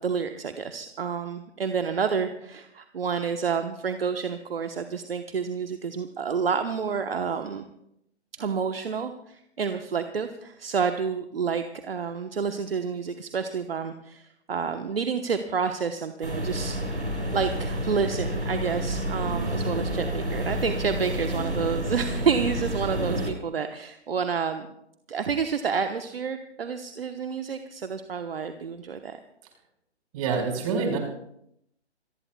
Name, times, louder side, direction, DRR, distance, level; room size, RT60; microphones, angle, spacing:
voice 1, 0.0-7.6 8.3-17.0 17.3-24.7 25.1-29.2, right 6 dB, 60° right, 7 dB, 1.2 m, -29 dB
sound 1, 16.2-23.3, equal, 85° right, 5.2 m, -29 dB
voice 2, 30.1-31.0, right 5 dB, 30° right, 1 dB, 5.1 m, -26 dB
27.0 x 19.0 x 2.3 m, 0.77 s
figure-of-eight pair, 135°, 34 cm